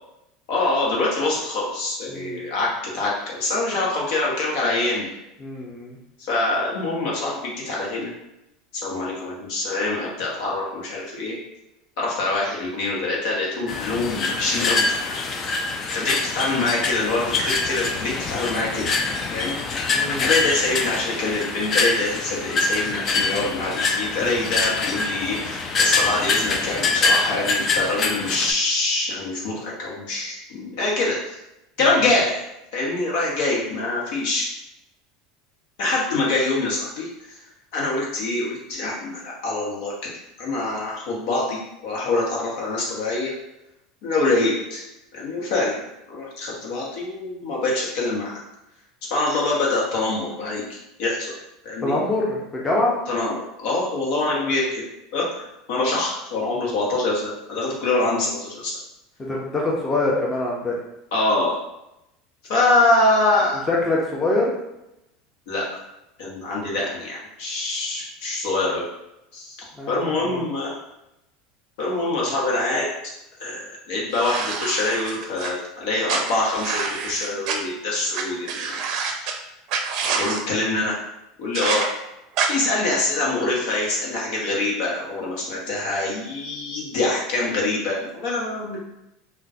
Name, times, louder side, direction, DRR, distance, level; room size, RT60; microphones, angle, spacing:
voice 1, 0.5-2.7 2.9-5.1 6.3-8.1 8.7-11.4 12.0-14.9 15.9-18.9 19.3-19.5 20.2-31.3 31.8-32.5 32.7-34.5 35.8-37.4 37.7-40.1 40.4-43.3 44.0-44.8 45.1-45.8 46.1-48.4 49.1-50.6 51.0-51.3 51.6-51.9 53.1-54.8 55.1-58.7 61.1-61.6 62.5-63.6 65.5-65.6 66.2-68.8 69.3-69.6 69.9-70.7 71.8-72.9 73.4-78.8 79.2-79.3 80.1-80.9 81.4-81.9 82.5-88.8, left 2 dB, 70° left, -3 dB, 1.0 m, -24 dB
voice 2, 2.1-2.4 5.4-6.0 19.9-20.3 31.8-31.9 51.8-52.9 59.2-60.7 63.7-64.5 69.8-70.4, left 2 dB, 20° left, -3 dB, 0.7 m, -24 dB
sound 1, 13.7-28.5, left 4 dB, 40° left, 0.4 m, -24 dB
sound 2, 74.1-75.5 76.1-77.6 78.1-78.2 78.5-79.3 79.7-80.4 81.5-81.9 82.4-82.5, right 5 dB, 60° right, 0.5 m, -26 dB
3.7 x 2.2 x 2.7 m, 0.89 s
hypercardioid pair, 95°, 0 cm